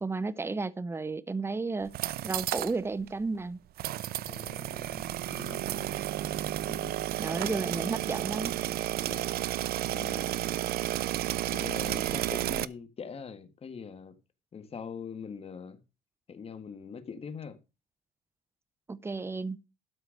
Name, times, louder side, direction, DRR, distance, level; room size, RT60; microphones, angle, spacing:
voice 1, 0.0-2.0 2.2-3.6 7.2-8.6 18.9-19.6, right 3 dB, 15° right, 0.7 m, -33 dB
sound 1, 1.8-2.8 3.1-3.2 3.8-12.7, right 14 dB, 65° right, 0.6 m, -32 dB
voice 2, 4.3-5.9 6.6-7.1 9.0-9.5 9.9-10.4 11.5-14.2 14.5-15.8 16.3-17.6, left 6 dB, 35° left, 1.7 m, -43 dB
12.5 x 4.6 x 6.5 m
cardioid pair, 110°, 17 cm